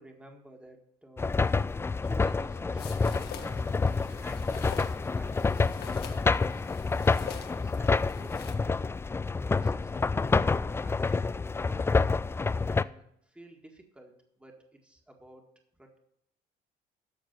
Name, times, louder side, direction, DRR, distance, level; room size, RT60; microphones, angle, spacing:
voice 1, 0.0-1.4 1.7-6.0 6.5-8.7 9.4-11.9 12.5-16.0, right 1 dB, 5° right, 2 dB, 1.8 m, -52 dB
sound 1, 1.2-12.8, left 4 dB, 15° left, 0.3 m, -28 dB
sound 2, 2.8-8.5, left 8 dB, 70° left, 1.5 m, -45 dB
13.5 x 4.7 x 7.4 m, 0.76 s
cardioid pair, 110°, 17 cm